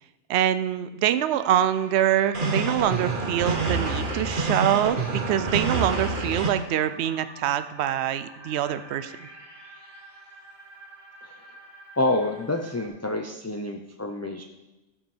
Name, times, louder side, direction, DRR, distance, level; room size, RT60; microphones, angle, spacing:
voice 1, 0.3-9.3, right 11 dB, 65° right, 12 dB, 0.8 m, -25 dB
sound 1, 1.4-12.9, right 2 dB, 20° right, 2.2 m, -47 dB
sound 2, 2.3-6.5, right 3 dB, 45° right, 1.4 m, -27 dB
voice 2, 12.0-14.4, left 2 dB, 20° left, 2 dB, 0.5 m, -28 dB
14.0 x 5.2 x 7.2 m, 1.1 s
omnidirectional pair, 1.3 m